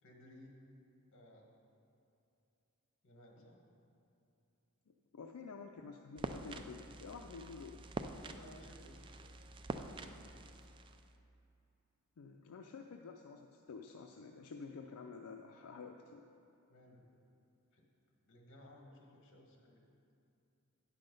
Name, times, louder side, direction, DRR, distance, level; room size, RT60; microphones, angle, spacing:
voice 1, 0.0-0.6 1.1-1.6 3.0-3.6 8.1-9.4 16.7-17.1 17.7-17.9 18.3-19.8, left 1 dB, 60° left, 0 dB, 1.4 m, -59 dB
voice 2, 5.1-7.8 12.2-16.2, left 4 dB, 85° left, 3 dB, 0.4 m, -50 dB
sound 1, 6.2-11.2, right 2 dB, 20° right, 0.3 m, -46 dB
9.8 x 5.7 x 5.3 m, 2.7 s
head